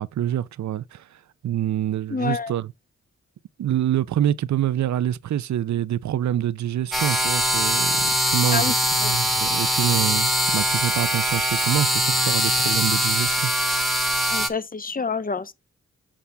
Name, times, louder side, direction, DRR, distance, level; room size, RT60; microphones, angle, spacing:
voice 1, 0.0-2.7 3.6-13.5, right 11 dB, 70° right, 0.6 m, -26 dB
voice 2, 2.1-2.5 8.5-8.7 9.0-9.1 14.3-15.5, left 4 dB, 30° left, 0.8 m, -27 dB
sound 1, 6.9-14.5, equal, ahead, 1.2 m, -22 dB
7.3 x 5.5 x 3.4 m
cardioid pair, 60°, 29 cm